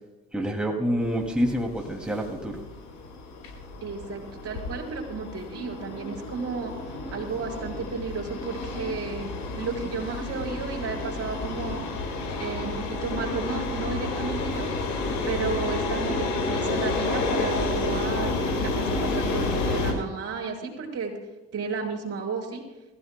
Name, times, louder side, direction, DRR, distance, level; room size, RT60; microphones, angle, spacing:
voice 1, 0.3-2.6, equal, 5° right, 1 dB, 2.5 m, -27 dB
sound 1, 1.0-19.9, left 3 dB, 90° left, 5.1 m, -30 dB
voice 2, 3.8-6.7 7.1-11.8 12.4-14.7 15.3-21.2 21.5-22.6, right 5 dB, 55° right, 1 dB, 4.6 m, -33 dB
24.5 x 15.5 x 2.2 m, 1.1 s
supercardioid pair, 80°, 29 cm